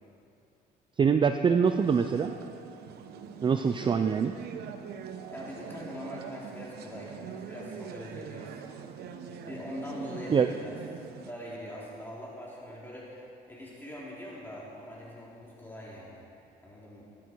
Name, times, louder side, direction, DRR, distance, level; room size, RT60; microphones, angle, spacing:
voice 1, 1.0-2.4 3.4-4.3 10.3-10.5, right 6 dB, 30° right, 8 dB, 0.5 m, -24 dB
sound 1, 1.6-11.3, right 7 dB, 70° right, 1.1 m, -43 dB
voice 2, 5.3-8.6 9.5-10.8 11.2-13.1 13.5-16.2 16.6-17.0, equal, 10° left, -7 dB, 3.5 m, -42 dB
22.0 x 11.0 x 4.6 m, 2.7 s
cardioid pair, 110°, 17 cm